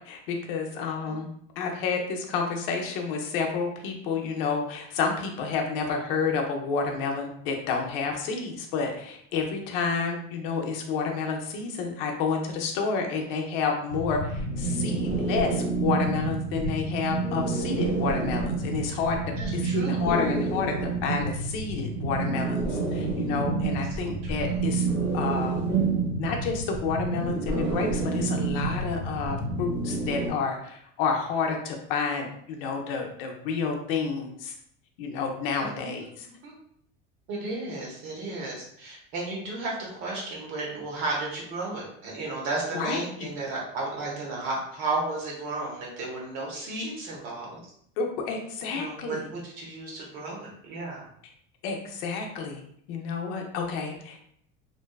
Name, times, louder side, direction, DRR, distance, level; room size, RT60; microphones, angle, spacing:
voice 1, 0.1-1.3 1.6-19.2 19.5-20.7 21.0-24.9 25.1-25.6 26.2-34.5 35.0-36.3 42.7-43.3 48.0-49.3 51.6-52.6 52.9-54.3, left 5 dB, 70° left, 2 dB, 0.6 m, -30 dB
sound 1, 13.9-30.3, right 3 dB, 15° right, 0.6 m, -28 dB
voice 2, 19.4-20.1 24.0-24.6 35.6-36.1 36.4-36.5 37.3-47.6 48.7-51.1, right 2 dB, 55° right, -3 dB, 0.9 m, -34 dB
2.6 x 2.2 x 2.2 m, 0.69 s
cardioid pair, 175°, 30 cm